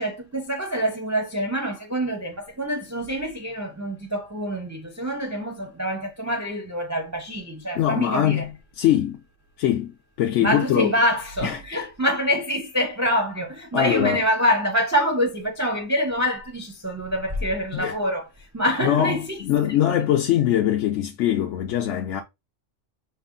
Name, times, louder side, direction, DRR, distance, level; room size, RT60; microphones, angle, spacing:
voice 1, 0.0-8.5 10.4-19.7, equal, 20° right, 0.4 m, -26 dB
voice 2, 7.7-8.5 8.8-9.2 9.6-10.9 11.4-11.9 13.7-14.2 17.7-18.0 18.8-19.2 19.4-22.2, left 11 dB, 75° left, 0.9 m, -22 dB
4.7 x 2.2 x 3.7 m
omnidirectional pair, 1.3 m